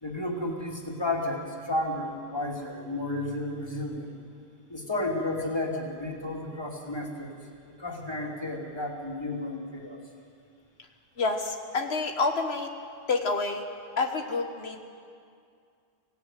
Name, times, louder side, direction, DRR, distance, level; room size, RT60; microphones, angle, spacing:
voice 1, 0.0-4.1 4.7-7.3 7.7-10.0, left 2 dB, 25° left, -1 dB, 3.0 m, -32 dB
voice 2, 11.2-12.7 13.1-13.6 14.0-14.8, left 3 dB, 90° left, 4 dB, 1.6 m, -28 dB
25.5 x 17.5 x 9.2 m, 2.3 s
omnidirectional pair, 1.0 m